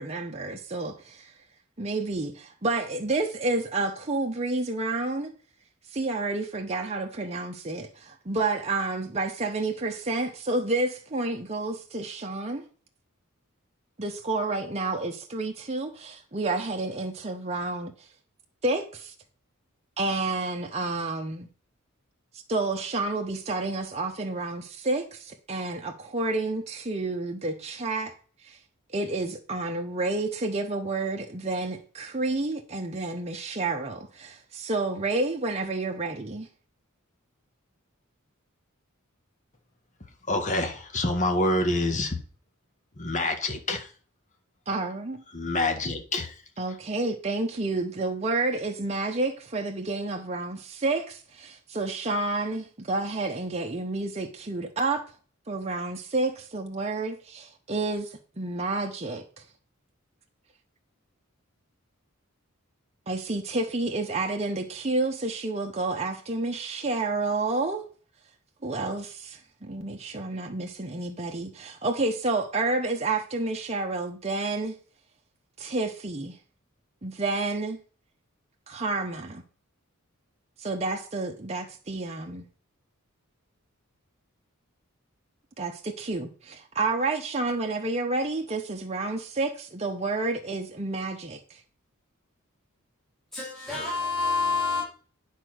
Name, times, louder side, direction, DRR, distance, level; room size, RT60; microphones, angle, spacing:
voice 1, 0.0-1.3 1.8-5.3 5.9-12.6 14.0-18.1 18.6-19.1 20.0-21.5 22.5-28.1 28.4-28.6 28.9-36.5 44.7-45.2 46.6-55.0 55.5-59.2 63.1-67.8 68.6-74.8 75.6-76.4 77.0-77.8 78.7-79.4 80.6-82.4 85.6-91.6, right 2 dB, 30° right, 0.9 m, -30 dB
voice 2, 40.3-42.2 43.0-43.9 45.3-46.4, left 2 dB, 35° left, 1.7 m, -27 dB
voice 3, 93.3-94.8, left 4 dB, ahead, 3.4 m, -27 dB
9.7 x 4.6 x 6.3 m
head